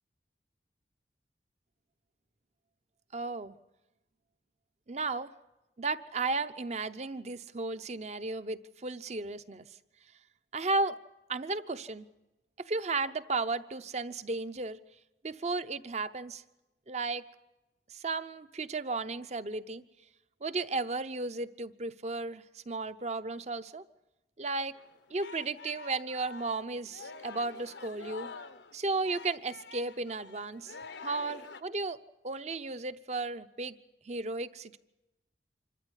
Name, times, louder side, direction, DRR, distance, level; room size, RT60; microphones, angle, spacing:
voice 1, 3.1-3.5 4.9-5.3 5.8-9.7 10.5-11.0 11.3-12.1 12.6-14.8 15.2-16.4 16.9-17.2 17.9-19.8 20.4-23.8 24.4-24.8 25.1-28.3 28.7-30.7 31.0-33.8 34.0-34.8, right 3 dB, 40° right, 12 dB, 0.7 m, -34 dB
Singing, 24.7-31.6, left 4 dB, 90° left, 1.0 m, -47 dB
26.0 x 14.0 x 9.8 m, 0.99 s
head